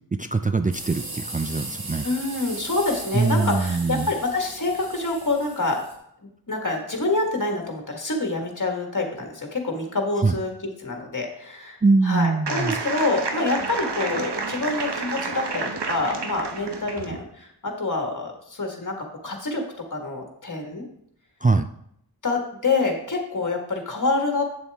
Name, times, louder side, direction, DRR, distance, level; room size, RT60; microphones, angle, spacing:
voice 1, 0.1-2.1 3.1-4.1 10.2-10.4 11.8-12.7 21.4-21.7, right 3 dB, 20° right, 8 dB, 0.3 m, -22 dB
sound 1, 0.7-5.9, right 2 dB, 60° right, 1.7 m, -37 dB
voice 2, 2.0-5.8 6.5-10.5 10.8-11.8 12.0-19.6 19.9-20.9 22.2-24.4, left 3 dB, 50° left, 2 dB, 1.7 m, -26 dB
sound 2, 12.5-17.2, right 4 dB, 80° right, 0.9 m, -30 dB
8.7 x 7.0 x 3.5 m, 0.73 s
wide cardioid pair, 50°, 40 cm